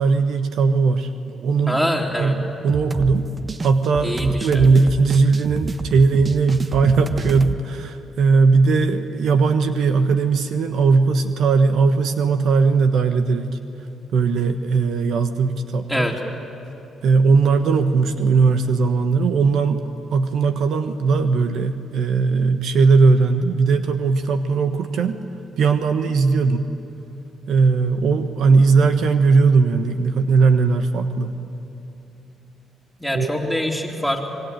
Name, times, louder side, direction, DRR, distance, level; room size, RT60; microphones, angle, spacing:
voice 1, 0.0-1.8 2.2-3.3 3.6-13.6 14.1-16.1 17.0-19.8 20.1-25.2 25.6-26.7 27.5-31.4 33.1-33.3, right 4 dB, 70° right, 8 dB, 1.3 m, -18 dB
voice 2, 1.7-2.3 4.0-4.7 15.9-16.1 33.0-34.3, equal, ahead, 0 dB, 3.8 m, -24 dB
sound 1, 2.7-7.6, right 3 dB, 30° right, 1.2 m, -30 dB
26.5 x 21.5 x 9.1 m, 2.8 s
cardioid pair, 90°, 0 cm